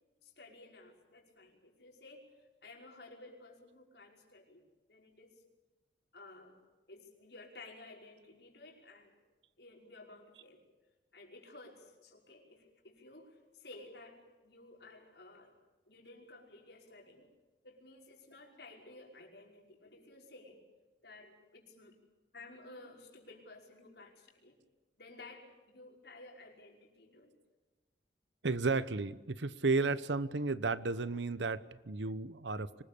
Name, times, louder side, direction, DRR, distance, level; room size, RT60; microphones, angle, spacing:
voice 1, 0.2-2.3 2.6-5.4 6.1-6.6 6.9-9.2 9.6-10.6 11.1-15.6 15.9-17.3 17.6-20.6 21.0-22.0 22.3-24.6 25.0-27.4, left 2 dB, 65° left, 0 dB, 5.4 m, -54 dB
voice 2, 28.4-32.8, right 3 dB, 80° right, 16 dB, 1.0 m, -33 dB
25.0 x 20.0 x 8.6 m, 1.2 s
head